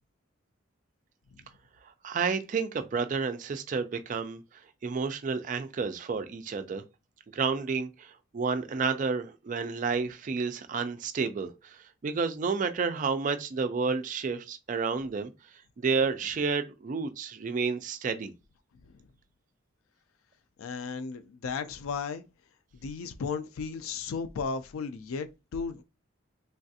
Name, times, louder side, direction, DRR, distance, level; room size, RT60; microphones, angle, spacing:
voice 1, 2.0-4.4 4.8-6.8 7.3-11.8 12.0-15.3 15.8-18.3, right 5 dB, 40° right, 0.3 m, -30 dB
voice 2, 20.6-22.2 22.8-25.8, left 5 dB, 90° left, 0.4 m, -35 dB
3.3 x 2.4 x 2.6 m
head